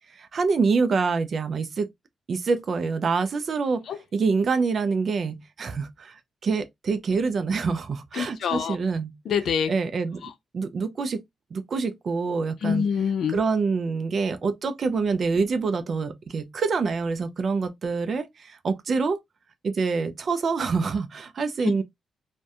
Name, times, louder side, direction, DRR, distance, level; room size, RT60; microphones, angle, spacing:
voice 1, 0.1-1.9 2.3-3.9 4.1-9.1 9.7-11.2 11.5-12.8 13.3-19.2 19.6-21.8, right 4 dB, 55° right, 0.3 m, -26 dB
voice 2, 8.1-8.8 9.3-9.7 10.2-10.3 12.6-13.4, left 7 dB, 70° left, 0.4 m, -25 dB
2.6 x 2.1 x 2.3 m
cardioid pair, 80°, 0 cm